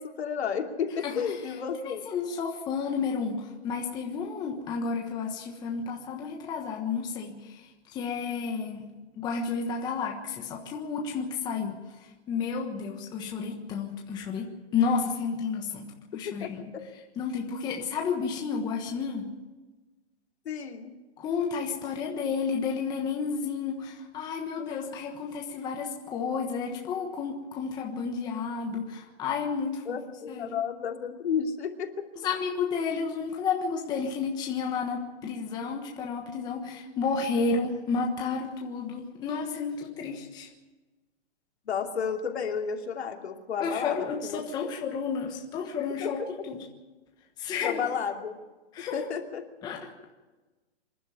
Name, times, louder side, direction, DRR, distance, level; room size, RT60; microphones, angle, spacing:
voice 1, 0.0-2.0 16.2-16.8 20.4-20.9 29.9-32.1 41.7-44.0 44.2-44.4 46.0-46.1 47.6-48.3 48.9-49.5, left 7 dB, 65° left, 3 dB, 2.9 m, -32 dB
voice 2, 2.0-7.6 7.9-8.9 9.2-11.7 12.3-16.7 17.2-19.3 21.2-30.0 30.3-30.6 32.2-40.5 43.6-46.2 46.5-46.6 47.4-47.8 48.7-48.9 49.6-49.8, left 5 dB, 10° left, 0 dB, 1.3 m, -31 dB
25.5 x 11.5 x 8.7 m, 1.2 s
hypercardioid pair, 165°, 35 cm